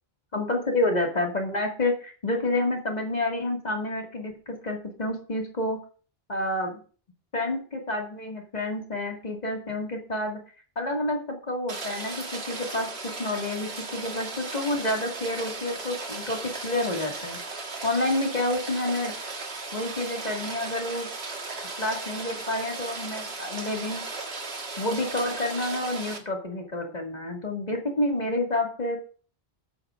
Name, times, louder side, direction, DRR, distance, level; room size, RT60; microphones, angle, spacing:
voice 1, 0.3-5.8 6.3-6.8 7.3-10.4 10.8-17.4 17.8-19.1 19.7-21.1 21.8-24.0 24.8-29.0, left 1 dB, 40° left, 0 dB, 2.3 m, -29 dB
Rain, 11.7-26.2, right 3 dB, 85° right, 1.9 m, -36 dB
19.0 x 9.0 x 2.5 m, 0.41 s
omnidirectional pair, 1.1 m